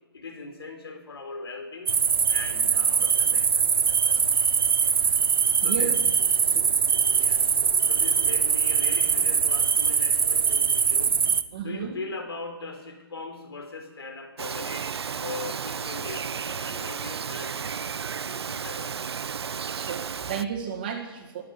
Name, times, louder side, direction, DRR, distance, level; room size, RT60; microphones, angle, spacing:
voice 1, 0.1-2.0 2.3-5.1 5.6-6.0 7.2-11.3 11.6-14.9 15.2-19.1, left 3 dB, 70° left, 5 dB, 3.9 m, -40 dB
sound 1, 1.9-11.4, right 6 dB, 65° right, 1.0 m, -22 dB
voice 2, 11.5-11.9 19.7-21.4, right 8 dB, 20° right, 2 dB, 1.6 m, -33 dB
Bird vocalization bird call bird song, 14.4-20.4, right 6 dB, 80° right, 0.6 m, -33 dB
22.0 x 7.7 x 8.0 m, 1.1 s
hypercardioid pair, 180°, 13 cm